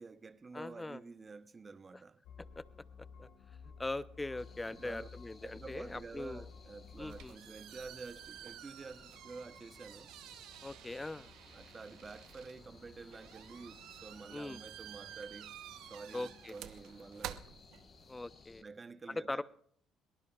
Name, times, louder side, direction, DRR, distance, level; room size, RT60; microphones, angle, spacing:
voice 1, 0.0-2.2 3.2-3.3 3.6-3.8 4.7-5.1 5.4-10.1 11.5-17.4 18.6-19.4, right 4 dB, 30° right, 0.8 m, -50 dB
voice 2, 0.5-1.0 2.6-2.7 3.0-3.3 3.8-6.5 7.0-7.4 10.6-11.3 14.3-14.6 16.1-16.5 18.1-18.6 19.1-19.4, left 2 dB, 15° left, 0.6 m, -41 dB
sound 1, 2.2-7.3, left 5 dB, 75° left, 1.7 m, -53 dB
sound 2, 4.4-18.6, left 4 dB, 40° left, 1.4 m, -60 dB
sound 3, 6.8-18.3, right 12 dB, 75° right, 0.7 m, -51 dB
22.0 x 19.0 x 2.4 m
supercardioid pair, 80°, 0 cm